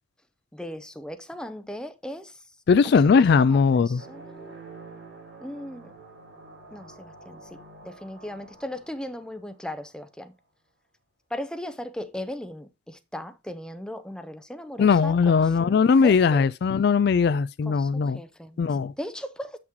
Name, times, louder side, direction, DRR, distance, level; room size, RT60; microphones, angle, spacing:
voice 1, 0.5-2.5 2.8-4.6 5.4-5.9 6.7-7.6 7.8-10.3 11.3-16.5 17.7-19.6, left 1 dB, 5° left, 0.6 m, -38 dB
voice 2, 2.7-4.0 14.8-18.2 18.6-18.9, left 5 dB, 60° left, 0.3 m, -19 dB
sound 1, 3.9-10.1, right 3 dB, 70° right, 2.5 m, -47 dB
7.9 x 5.9 x 2.9 m
head